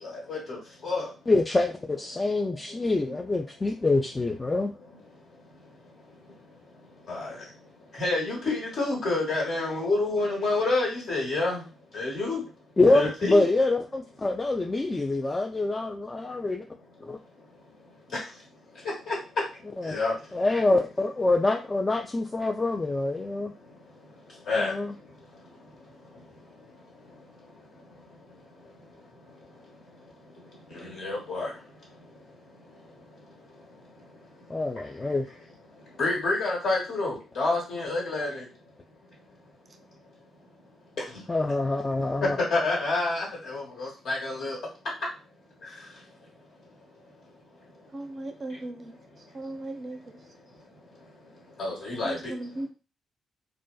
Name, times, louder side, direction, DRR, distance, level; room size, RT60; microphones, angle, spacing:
voice 1, 0.0-1.1 7.1-7.3 8.0-11.6 11.9-12.4 12.9-13.4 19.1-19.2 19.9-20.1 24.5-24.7 30.7-31.5 36.0-38.4 42.5-44.6 51.6-52.3, left 3 dB, 60° left, -3 dB, 1.2 m, -28 dB
voice 2, 1.3-4.7 12.8-16.6 17.0-17.2 19.8-20.0 20.3-23.5 24.5-24.9 34.5-35.3 41.3-42.4, left 2 dB, 25° left, 1 dB, 0.3 m, -25 dB
voice 3, 47.9-48.9 49.3-50.0 52.0-52.7, right 2 dB, 45° right, 6 dB, 0.4 m, -36 dB
2.5 x 2.2 x 2.2 m, 0.32 s
hypercardioid pair, 40°, 0 cm